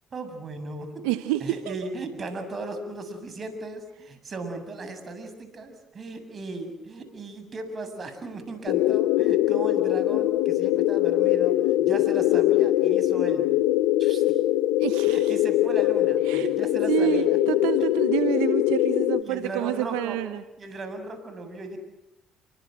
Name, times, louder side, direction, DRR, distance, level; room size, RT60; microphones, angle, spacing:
voice 1, 0.1-11.5 11.8-13.5 14.0-14.2 15.1-17.5 19.2-20.2 20.6-21.8, right 2 dB, 45° right, 9 dB, 7.3 m, -37 dB
voice 2, 1.0-1.4 1.6-1.7 14.8-15.3 16.2-16.5 16.9-20.4, right 15 dB, 90° right, 11 dB, 1.1 m, -28 dB
sound 1, 8.7-19.2, left 14 dB, 85° left, 1.0 m, -22 dB
29.5 x 25.0 x 7.8 m, 0.81 s
supercardioid pair, 65°, 0 cm